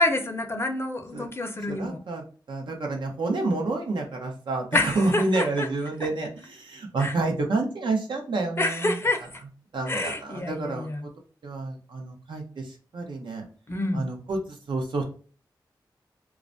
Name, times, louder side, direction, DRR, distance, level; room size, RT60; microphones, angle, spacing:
voice 1, 0.0-2.0 4.7-5.7 7.0-7.1 8.6-9.3 9.9-11.0 13.7-14.0, left 2 dB, 30° left, 4 dB, 0.5 m, -27 dB
voice 2, 1.7-2.2 2.5-9.0 9.7-10.9 11.4-13.4 13.9-14.4 14.7-15.0, right 2 dB, 75° right, 1 dB, 0.7 m, -29 dB
2.3 x 2.1 x 2.5 m, 0.38 s
cardioid pair, 60°, 8 cm